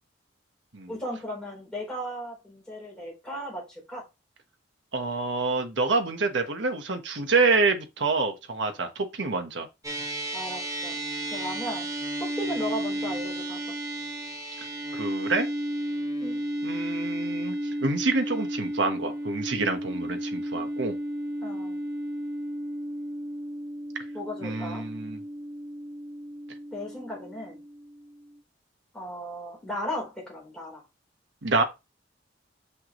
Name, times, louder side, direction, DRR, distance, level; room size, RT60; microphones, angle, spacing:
voice 1, 0.9-4.0 10.3-11.0 11.3-11.9 12.2-13.6 16.2-16.4 21.4-21.8 24.1-24.9 26.7-27.6 28.9-30.8, equal, 5° left, 3.8 m, -36 dB
voice 2, 4.9-9.7 14.9-15.5 16.6-17.5 17.8-21.0 24.4-25.2 31.4-31.6, right 3 dB, 70° right, 1.2 m, -27 dB
sound 1, 9.8-28.4, right 1 dB, 20° right, 1.4 m, -33 dB
6.0 x 5.7 x 3.1 m
head